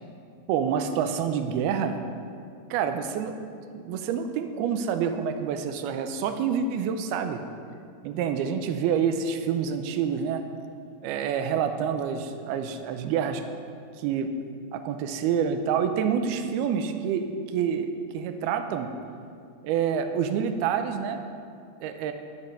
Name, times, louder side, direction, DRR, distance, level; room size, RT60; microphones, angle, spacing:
voice 1, 0.5-2.0 2.7-3.4 3.7-7.4 8.0-10.4 11.0-13.4 14.0-14.3 14.7-18.9 19.6-21.2 21.8-22.1, right 7 dB, 85° right, 7 dB, 2.6 m, -27 dB
12.0 x 11.5 x 5.3 m, 2.3 s
omnidirectional pair, 4.5 m